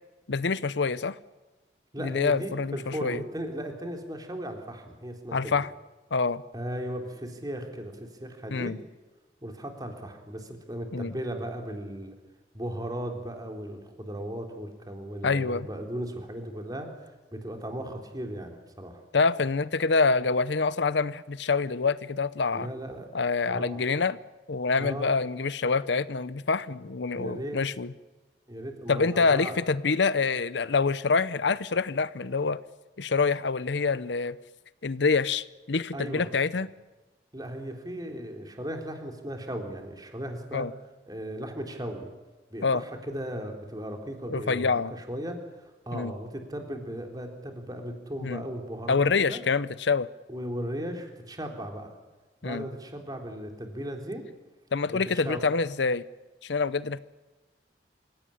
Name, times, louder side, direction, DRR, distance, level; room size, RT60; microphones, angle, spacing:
voice 1, 0.3-1.2 2.0-3.2 5.3-5.7 6.1-6.4 8.5-8.8 10.9-11.1 15.2-15.7 19.1-22.7 23.1-24.2 24.5-27.9 28.9-32.6 33.0-34.4 34.8-36.7 40.5-40.7 42.6-42.8 44.3-44.9 45.9-46.1 48.2-48.4 48.9-50.1 52.4-52.7 54.7-56.0 56.4-57.0, left 4 dB, 80° left, 16 dB, 0.7 m, -26 dB
voice 2, 1.9-5.6 6.5-8.8 9.4-12.2 12.5-19.0 22.5-23.1 23.5-23.8 24.8-25.2 27.1-27.6 28.5-29.6 35.9-36.3 37.3-40.7 41.1-42.1 42.5-49.4 50.3-51.9 52.4-54.2 54.9-55.4, equal, 20° right, 3 dB, 3.6 m, -36 dB
27.0 x 17.0 x 10.0 m, 1.2 s
head